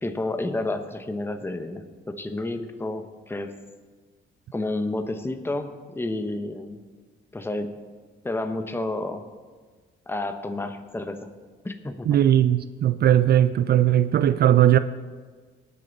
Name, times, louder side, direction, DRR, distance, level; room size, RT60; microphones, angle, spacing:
voice 1, 0.0-3.6 4.5-6.8 7.3-7.7 8.2-9.2 10.1-11.3 11.6-12.2, left 2 dB, 10° left, 0.9 m, -30 dB
voice 2, 12.1-14.8, right 11 dB, 55° right, 0.4 m, -18 dB
19.0 x 6.8 x 4.0 m
cardioid pair, 90°, 20 cm